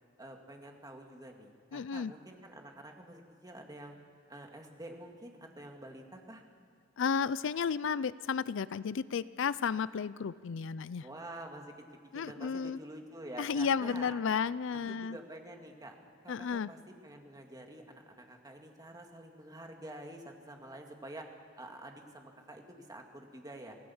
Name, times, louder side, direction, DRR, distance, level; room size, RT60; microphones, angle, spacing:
voice 1, 0.2-4.0 4.3-6.4 11.0-11.9 12.1-14.2 14.7-16.0 16.2-21.3 21.6-23.8, right 1 dB, 20° right, 3 dB, 2.1 m, -48 dB
voice 2, 1.7-2.1 7.0-11.1 12.1-12.8 13.4-15.2 16.3-16.7, left 6 dB, 65° left, 18 dB, 0.4 m, -33 dB
25.5 x 16.5 x 7.2 m, 2.2 s
head